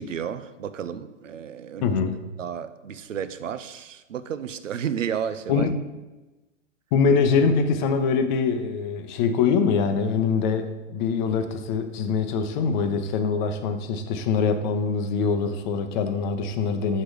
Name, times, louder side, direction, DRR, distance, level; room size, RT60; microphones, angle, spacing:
voice 1, 0.0-2.0 2.4-5.7, right 8 dB, 90° right, 13 dB, 0.6 m, -32 dB
voice 2, 1.8-2.2 5.5-5.7 6.9-17.0, left 5 dB, 40° left, 9 dB, 0.7 m, -23 dB
6.5 x 5.0 x 4.9 m, 1.1 s
hypercardioid pair, 120°, 37 cm